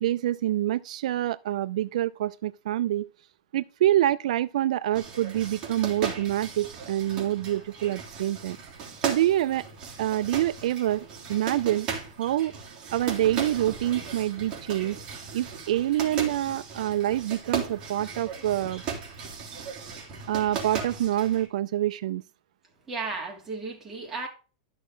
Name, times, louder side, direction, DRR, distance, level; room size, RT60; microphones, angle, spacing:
voice 1, 0.0-3.1 3.5-8.6 9.0-9.6 10.0-11.9 12.2-12.5 12.9-15.0 15.3-18.8 20.3-22.2, right 13 dB, 75° right, 0.4 m, -26 dB
sound 1, 4.9-21.5, right 6 dB, 30° right, 3.2 m, -37 dB
voice 2, 22.9-24.3, right 3 dB, 10° right, 3.0 m, -34 dB
12.0 x 6.4 x 3.8 m
supercardioid pair, 155°, 4 cm